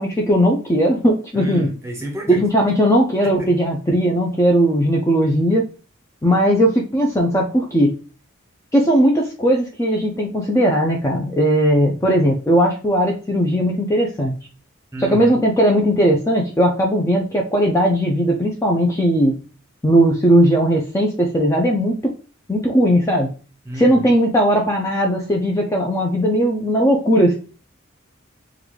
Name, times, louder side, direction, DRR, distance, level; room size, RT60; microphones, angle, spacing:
voice 1, 0.0-1.7 2.3-5.7 6.2-7.9 8.7-14.4 15.0-19.4 19.8-22.0 22.5-23.3 23.8-27.3, equal, 15° left, 0.4 m, -17 dB
voice 2, 1.3-2.4 3.2-3.5 11.9-12.3 14.9-15.4 23.6-24.1, equal, 15° right, 0.7 m, -31 dB
3.8 x 2.3 x 3.0 m
head